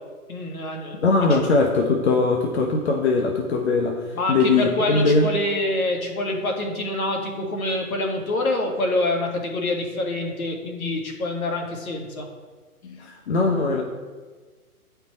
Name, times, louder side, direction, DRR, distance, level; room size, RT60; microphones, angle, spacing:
voice 1, 0.3-1.0 1.3-1.4 4.1-12.3, left 2 dB, 65° left, 2 dB, 1.9 m, -26 dB
voice 2, 1.0-5.3 12.8-13.8, left 3 dB, 45° left, 2 dB, 0.9 m, -21 dB
9.6 x 4.6 x 4.2 m, 1.4 s
hypercardioid pair, 140°, 45 cm